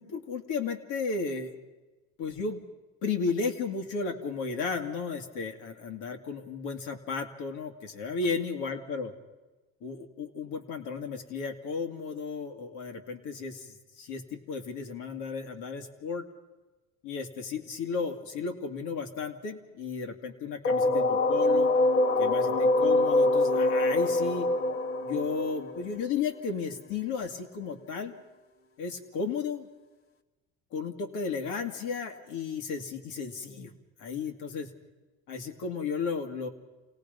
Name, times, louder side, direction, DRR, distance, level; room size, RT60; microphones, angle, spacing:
voice 1, 0.0-1.5 2.2-2.6 3.0-9.1 9.8-16.3 17.0-21.7 22.2-24.5 25.0-28.1 28.8-29.7 30.7-33.7 34.0-34.7 35.3-36.5, left 5 dB, 80° left, 5 dB, 2.3 m, -34 dB
sound 1, 20.6-26.4, left 2 dB, 45° left, 1.4 m, -25 dB
28.5 x 18.5 x 5.3 m, 1.2 s
cardioid pair, 115°, 30 cm